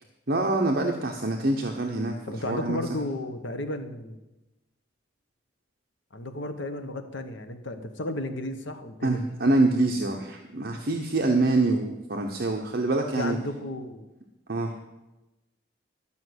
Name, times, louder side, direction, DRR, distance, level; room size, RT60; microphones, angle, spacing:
voice 1, 0.3-2.1 2.5-2.8 9.0-13.4 14.5-14.7, right 2 dB, 55° right, 2 dB, 0.9 m, -25 dB
voice 2, 2.3-4.2 6.1-9.2 13.2-14.1, left 1 dB, 85° left, 8 dB, 1.0 m, -33 dB
12.0 x 5.7 x 8.0 m, 1.0 s
head